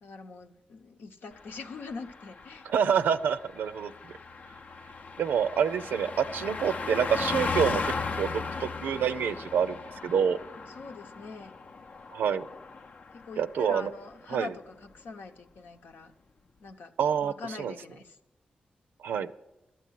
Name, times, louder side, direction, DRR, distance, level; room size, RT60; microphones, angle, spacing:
voice 1, 0.0-2.7 10.6-11.5 13.1-16.1 16.6-16.9 17.2-18.2, left 4 dB, 80° left, 5 dB, 0.9 m, -43 dB
Car passing by, 1.4-13.3 13.6-13.9, left 4 dB, 60° left, 0.6 m, -36 dB
voice 2, 2.7-4.1 5.2-8.3 8.6-9.8 10.0-10.4 12.1-12.5 13.4-13.9 14.3-14.5 17.0-17.3 17.6-17.7 19.0-19.3, right 7 dB, 90° right, 12 dB, 0.5 m, -27 dB
12.5 x 8.5 x 9.2 m, 0.96 s
cardioid pair, 65°, 3 cm